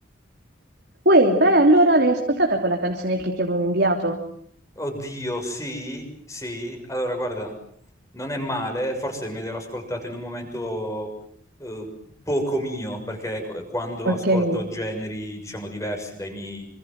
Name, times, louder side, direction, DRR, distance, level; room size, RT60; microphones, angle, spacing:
voice 1, 1.0-4.2 14.0-14.6, right 1 dB, 55° right, 1 dB, 3.2 m, -19 dB
voice 2, 4.8-7.5 8.1-11.1 11.6-11.9 12.3-16.7, equal, 15° left, 5 dB, 6.4 m, -30 dB
27.0 x 26.0 x 7.7 m, 0.64 s
head